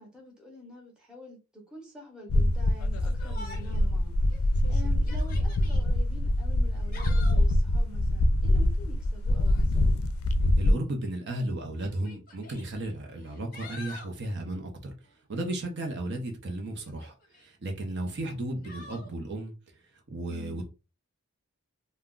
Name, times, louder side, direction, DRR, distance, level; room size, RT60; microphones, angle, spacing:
voice 1, 0.0-4.1 4.7-10.0 20.2-20.6, equal, 5° right, 0.8 m, -47 dB
sound 1, 2.3-10.7, left 1 dB, 75° left, 0.4 m, -24 dB
Yell, 3.2-3.9 4.3-4.4 4.9-5.8 6.7-7.5 9.3-9.7 10.8-10.9 11.8-12.6 13.2-14.1 16.8-17.5 18.6-19.1, left 3 dB, 40° left, 0.7 m, -46 dB
voice 2, 10.6-14.9 15.3-19.5 20.1-20.6, right 1 dB, 50° right, 0.6 m, -34 dB
2.3 x 2.2 x 3.6 m
head